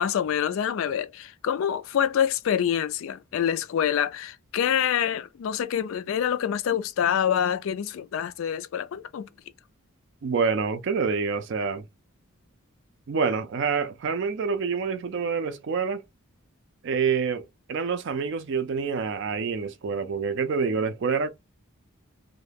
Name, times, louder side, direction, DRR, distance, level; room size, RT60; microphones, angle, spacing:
voice 1, 0.0-9.3, left 9 dB, 65° left, 0.3 m, -26 dB
voice 2, 10.2-11.8 13.1-16.0 16.8-21.3, right 5 dB, 55° right, 0.4 m, -27 dB
2.3 x 2.1 x 3.2 m
head